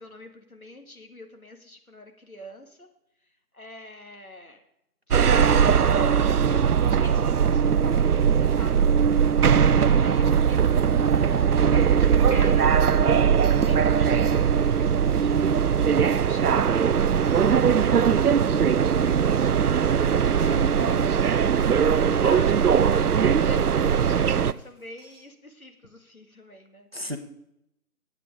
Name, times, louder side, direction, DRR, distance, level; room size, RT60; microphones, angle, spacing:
voice 1, 0.0-2.9 3.5-4.6 5.1-8.0 8.3-13.0 13.6-20.8 21.9-26.9, left 1 dB, 65° left, 5 dB, 1.9 m, -44 dB
sound 1, 5.1-24.5, right 7 dB, 75° right, 0.5 m, -20 dB
sound 2, 10.2-25.2, equal, 10° right, 3.3 m, -54 dB
sound 3, 19.1-19.2, right 1 dB, 45° left, 3.6 m, -44 dB
voice 2, 20.4-21.1 26.9-27.2, equal, 40° right, 7 dB, 0.9 m, -33 dB
15.5 x 8.4 x 3.6 m, 0.80 s
figure-of-eight pair, 175°, 46 cm